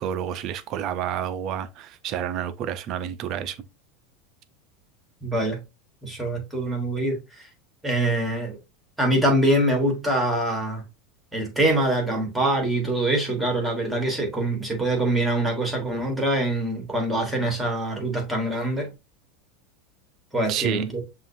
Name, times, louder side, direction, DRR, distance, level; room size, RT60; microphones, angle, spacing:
voice 1, 0.0-3.6 20.5-20.8, right 9 dB, 30° right, 0.5 m, -29 dB
voice 2, 5.2-5.6 6.0-7.5 7.8-8.6 9.0-10.8 11.3-18.9 20.3-21.0, right 1 dB, ahead, 1.2 m, -24 dB
7.4 x 2.5 x 2.6 m
supercardioid pair, 180°, 0 cm